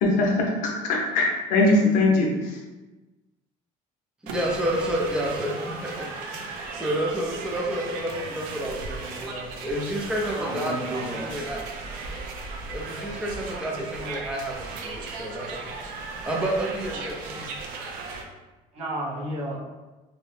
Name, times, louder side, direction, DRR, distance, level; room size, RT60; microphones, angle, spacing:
voice 1, 0.0-2.3, left 2 dB, 65° left, -1 dB, 0.6 m, -21 dB
voice 2, 4.2-11.6 12.7-15.8 16.0-17.5, right 1 dB, 5° right, -2 dB, 0.4 m, -30 dB
sound 1, 4.3-18.2, right 3 dB, 70° right, 0.4 m, -36 dB
voice 3, 10.3-11.3 18.7-19.6, right 1 dB, 45° right, -5 dB, 0.9 m, -32 dB
2.8 x 2.0 x 3.1 m, 1.1 s
cardioid pair, 155°, 15 cm